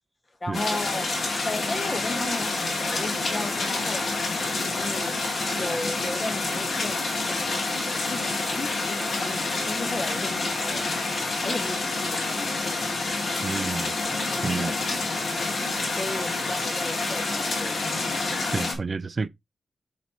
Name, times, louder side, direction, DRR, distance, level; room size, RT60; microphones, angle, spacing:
voice 1, 0.4-1.1 1.4-4.2 4.6-5.2 5.5-11.1 11.4-12.9 14.5-14.8 15.9-18.0, left 2 dB, 25° left, 1.4 m, -35 dB
sound 1, 0.5-18.7, left 3 dB, 55° left, 2.5 m, -28 dB
voice 2, 13.4-13.9 14.4-14.7 18.5-19.3, right 4 dB, 40° right, 0.4 m, -29 dB
8.8 x 4.2 x 3.0 m
wide cardioid pair, 120°, 0 cm